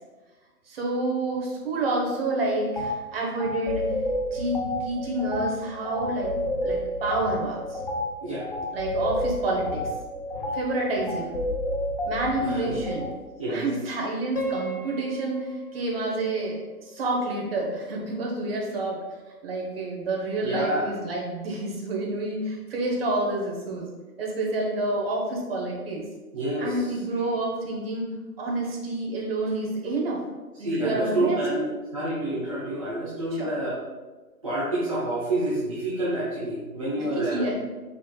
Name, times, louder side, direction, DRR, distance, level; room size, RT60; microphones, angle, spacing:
voice 1, 0.7-3.9 4.3-6.3 6.6-7.8 8.7-9.8 10.5-11.4 12.1-13.1 13.5-19.0 19.4-23.9 24.2-26.1 26.6-28.1 28.4-30.2 30.6-31.4 33.4-33.5 37.0-37.6, right 2 dB, 40° right, -1 dB, 1.0 m, -28 dB
sound 1, 2.8-2.9 3.4-13.1, left 1 dB, 35° left, 0.4 m, -30 dB
voice 2, 12.4-12.8 13.4-13.7 20.4-20.9 26.3-26.8 30.6-33.8 34.4-37.6, right 1 dB, 25° right, -8 dB, 0.5 m, -28 dB
Piano, 14.4-17.4, right 1 dB, 75° left, 1.0 m, -36 dB
4.6 x 4.3 x 2.2 m, 1.2 s
figure-of-eight pair, 145°, 46 cm